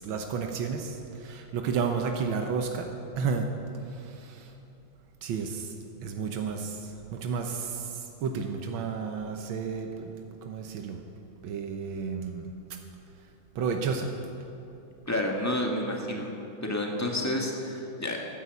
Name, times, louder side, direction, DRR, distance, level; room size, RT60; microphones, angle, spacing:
voice 1, 0.0-2.9 3.2-3.5 3.9-4.5 5.2-5.7 6.0-10.1 10.4-11.0 11.4-12.5 13.6-14.1, right 5 dB, 85° right, 4 dB, 1.8 m, -32 dB
voice 2, 15.1-16.3 16.6-18.2, left 1 dB, 10° left, 0 dB, 1.7 m, -30 dB
13.5 x 10.0 x 8.4 m, 2.9 s
omnidirectional pair, 2.1 m